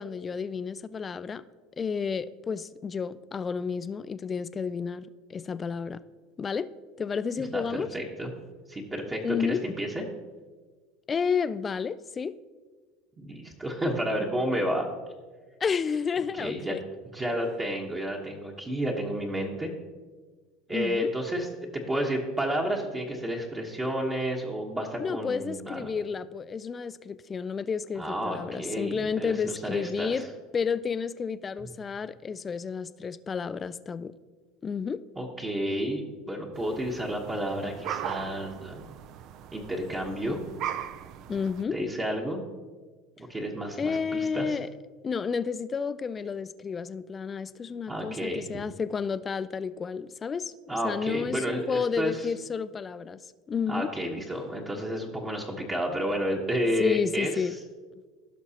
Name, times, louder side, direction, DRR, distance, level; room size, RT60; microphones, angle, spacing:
voice 1, 0.0-1.4 1.8-6.0 6.4-6.7 7.0-7.9 9.2-9.6 11.1-12.3 15.6-16.8 20.7-21.1 25.0-30.3 30.5-34.1 34.6-35.0 41.3-41.8 43.8-44.7 45.0-50.5 50.8-53.2 53.5-53.9 56.8-57.5, left 6 dB, 25° left, 15 dB, 0.3 m, -31 dB
voice 2, 7.5-8.3 8.7-10.0 13.2-14.8 16.3-16.7 17.1-19.7 20.7-25.9 28.0-30.3 31.6-31.7 35.2-38.9 39.5-40.4 41.7-42.4 43.3-44.6 47.9-48.5 50.7-52.3 53.7-57.5, equal, 15° right, -1 dB, 1.1 m, -31 dB
sound 1, 36.5-41.6, right 10 dB, 50° right, 0.4 m, -39 dB
16.0 x 6.0 x 2.8 m, 1.4 s
supercardioid pair, 120°, 0 cm